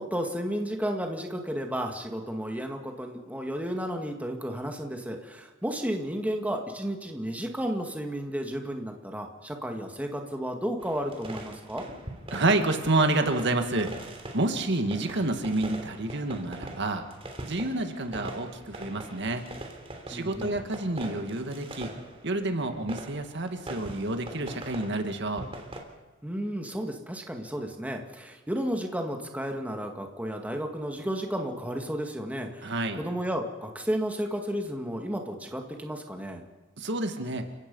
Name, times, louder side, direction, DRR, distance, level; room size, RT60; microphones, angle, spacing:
voice 1, 0.0-11.9 20.1-20.5 26.2-36.4, equal, 10° right, 3 dB, 1.9 m, -33 dB
sound 1, 10.8-25.8, right 1 dB, 30° right, 3.2 m, -43 dB
voice 2, 12.3-13.9 14.3-17.0 17.5-19.4 20.1-21.9 22.2-25.5 32.6-33.0 36.8-37.5, right 2 dB, 60° right, 6 dB, 1.9 m, -28 dB
30.0 x 17.0 x 5.5 m, 1.2 s
head